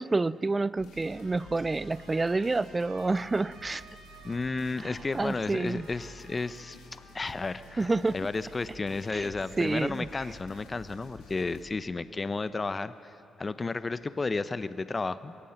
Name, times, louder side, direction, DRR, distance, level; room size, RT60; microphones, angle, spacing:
voice 1, 0.0-3.8 4.8-5.9 7.8-8.1 9.1-9.3 9.6-10.1, right 3 dB, 30° right, 19 dB, 0.5 m, -28 dB
sound 1, 0.8-11.6, left 2 dB, 75° left, 3.8 m, -51 dB
Trumpet, 1.0-8.7, right 3 dB, 85° right, 7.9 m, -54 dB
voice 2, 4.2-6.8 7.1-15.4, left 3 dB, 35° left, 14 dB, 0.9 m, -33 dB
24.0 x 23.5 x 6.7 m, 2.5 s
hypercardioid pair, 40°, 0 cm